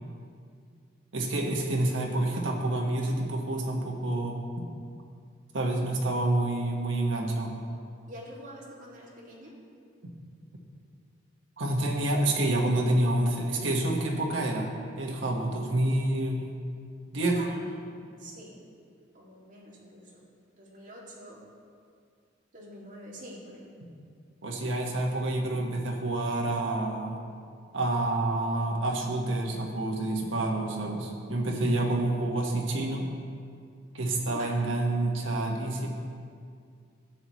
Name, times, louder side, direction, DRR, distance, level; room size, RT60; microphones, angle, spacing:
voice 1, 1.1-4.7 5.5-7.5 10.0-10.1 11.6-14.7 15.0-16.6 17.1-17.4 24.4-27.2 27.7-33.1 33.9-35.9, right 1 dB, 75° right, -1 dB, 1.4 m, -28 dB
voice 2, 8.1-9.5 17.3-18.6 19.1-20.2 20.6-21.4 22.5-23.7 34.3-34.5, right 1 dB, 40° right, -6 dB, 2.3 m, -46 dB
13.5 x 8.4 x 3.1 m, 2.3 s
head